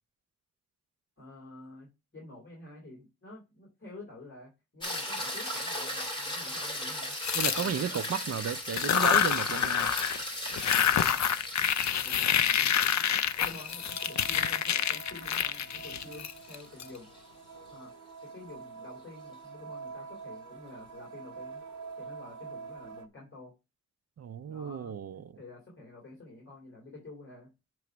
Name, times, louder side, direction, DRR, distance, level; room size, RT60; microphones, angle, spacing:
voice 1, 1.2-7.2 7.5-7.9 10.6-11.3 12.0-12.9 13.4-17.1 17.7-17.9 18.2-21.6 21.9-23.5 24.4-27.5, left 2 dB, 40° left, 3.3 m, -49 dB
sound 1, 4.8-17.2 21.7-21.8, left 1 dB, 15° left, 2.5 m, -38 dB
sound 2, 7.2-8.2 8.6-10.2 10.4-16.8, left 9 dB, 70° left, 0.5 m, -27 dB
voice 2, 7.3-9.9 24.2-25.3, right 7 dB, 55° right, 0.5 m, -34 dB
sound 3, 12.2-23.1, right 5 dB, 90° right, 0.8 m, -47 dB
7.6 x 3.1 x 5.9 m
wide cardioid pair, 135°, 29 cm